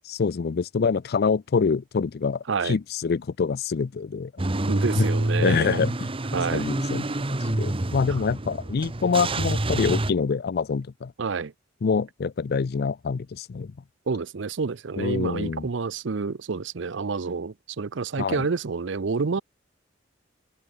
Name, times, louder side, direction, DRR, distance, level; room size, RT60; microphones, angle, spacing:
voice 1, 0.1-4.3 5.0-5.1 5.4-6.1 6.5-11.1 11.8-13.7 15.0-15.7 18.2-18.5, left 5 dB, 55° left, 0.4 m, -26 dB
Car / Engine starting / Idling, 4.4-10.1, right 1 dB, 30° right, 1.1 m, -27 dB
voice 2, 4.7-5.9 6.3-6.7 8.1-8.2 11.2-11.5 14.1-19.4, right 4 dB, 70° right, 0.6 m, -28 dB
head